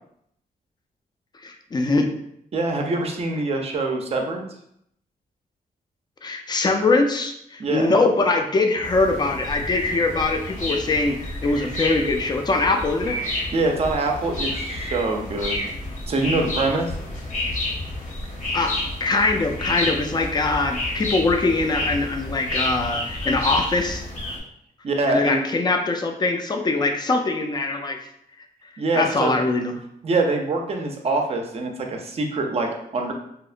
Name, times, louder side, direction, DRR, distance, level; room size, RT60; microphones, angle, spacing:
voice 1, 1.4-2.1 6.2-13.2 18.5-18.7 19.0-24.0 25.1-28.0 28.9-29.7, left 3 dB, 25° left, 4 dB, 0.3 m, -22 dB
voice 2, 2.5-4.5 7.6-7.9 13.5-15.7 16.1-16.9 24.8-25.4 28.8-29.4 30.0-33.1, right 2 dB, 40° right, 2 dB, 0.4 m, -24 dB
sound 1, 8.8-24.4, left 1 dB, 55° left, 0.8 m, -30 dB
2.8 x 2.0 x 2.4 m, 0.73 s
cardioid pair, 100°, 16 cm